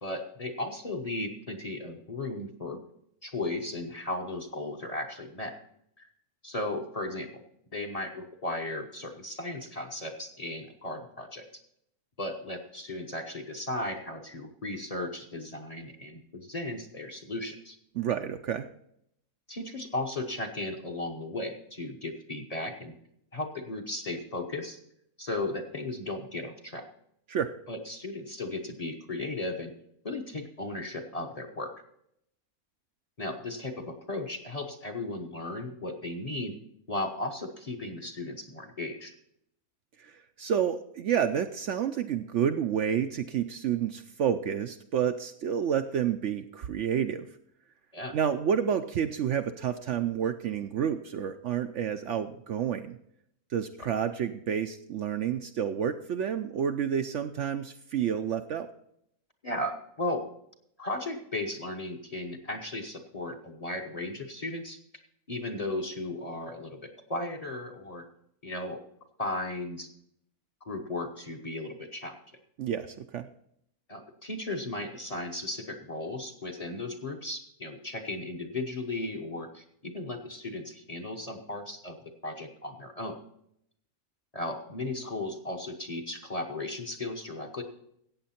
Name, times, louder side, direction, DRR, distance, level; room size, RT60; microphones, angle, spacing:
voice 1, 0.0-2.8 3.2-5.5 6.0-6.1 6.4-7.4 7.7-11.5 12.2-17.8 19.5-22.9 23.3-24.8 25.2-26.9 27.7-29.7 30.0-31.7 33.2-36.6 36.9-39.1 47.9-48.1 53.8-53.9 59.4-60.2 60.8-64.8 65.3-68.0 68.4-68.8 69.2-69.9 70.7-72.2 73.9-82.0 82.2-83.2 84.3-87.6, left 2 dB, 30° left, 5 dB, 1.0 m, -36 dB
voice 2, 17.9-18.7 27.3-27.5 40.0-47.3 48.1-53.0 53.5-58.7 72.6-73.3, right 8 dB, 65° right, 8 dB, 0.8 m, -29 dB
15.0 x 8.7 x 4.3 m, 0.73 s
omnidirectional pair, 1.5 m